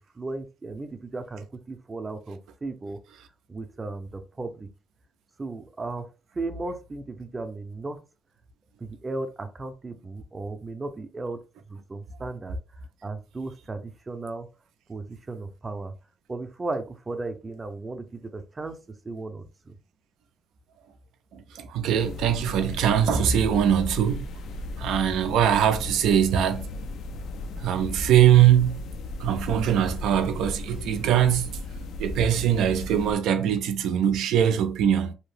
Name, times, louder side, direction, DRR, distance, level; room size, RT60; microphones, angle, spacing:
voice 1, 0.0-3.0 3.5-4.7 5.4-6.1 6.4-8.0 8.8-11.4 11.7-12.6 13.0-14.5 14.9-15.9 16.3-18.8 19.0-19.8, right 3 dB, 25° right, 0.5 m, -35 dB
voice 2, 21.3-24.3 24.8-26.7 27.6-28.8 29.2-31.5 32.0-35.1, right 9 dB, 85° right, 0.4 m, -22 dB
sound 1, 22.0-33.1, left 2 dB, 75° left, 0.3 m, -36 dB
2.8 x 2.0 x 3.1 m
cardioid pair, 90°, 0 cm